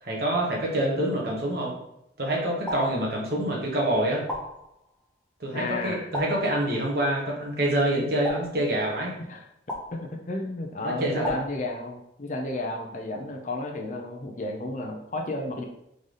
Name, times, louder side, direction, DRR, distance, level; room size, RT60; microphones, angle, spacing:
voice 1, 0.0-1.7 2.2-4.2 5.4-9.2 10.8-11.4, right 1 dB, 50° right, -3 dB, 1.2 m, -26 dB
sound 1, 2.7-3.6 4.3-5.2 6.1-7.0 8.2-9.1 9.7-10.5 11.2-12.2, left 1 dB, 10° left, 0.9 m, -38 dB
voice 2, 5.5-6.1 9.3-9.4 9.9-15.6, left 2 dB, 40° left, 2 dB, 0.5 m, -32 dB
4.0 x 3.3 x 3.9 m, 0.81 s
head